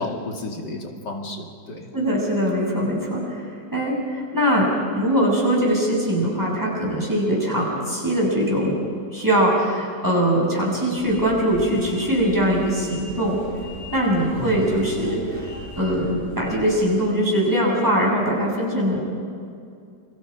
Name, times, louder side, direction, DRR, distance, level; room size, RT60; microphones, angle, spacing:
voice 1, 0.0-1.9 14.4-14.5, left 2 dB, 85° left, 1 dB, 2.9 m, -32 dB
voice 2, 1.9-4.7 5.0-8.8 9.1-13.4 13.9-15.2 15.8-19.0, equal, 10° right, -3 dB, 6.8 m, -21 dB
sound 1, 10.9-16.8, left 1 dB, 10° left, 7.8 m, -38 dB
29.0 x 24.5 x 5.0 m, 2.4 s
omnidirectional pair, 1.8 m